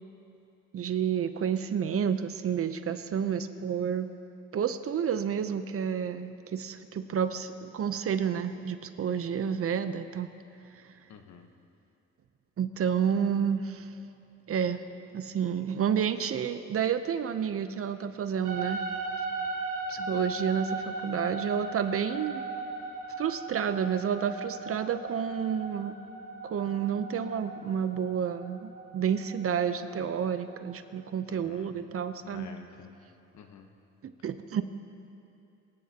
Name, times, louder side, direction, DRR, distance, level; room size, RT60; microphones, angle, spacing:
voice 1, 0.7-4.1 4.5-10.3 12.6-13.9 14.5-14.8 15.1-18.8 19.9-22.5 23.2-25.9 26.4-32.5 34.2-34.6, right 8 dB, 50° right, 11 dB, 0.7 m, -30 dB
voice 2, 11.1-11.5 31.3-31.8 32.2-33.0 33.3-33.7, left 6 dB, 70° left, 5 dB, 1.1 m, -48 dB
sound 1, 18.4-30.7, right 3 dB, 80° right, 2.6 m, -38 dB
24.0 x 10.5 x 2.9 m, 2.7 s
cardioid pair, 90°, 30 cm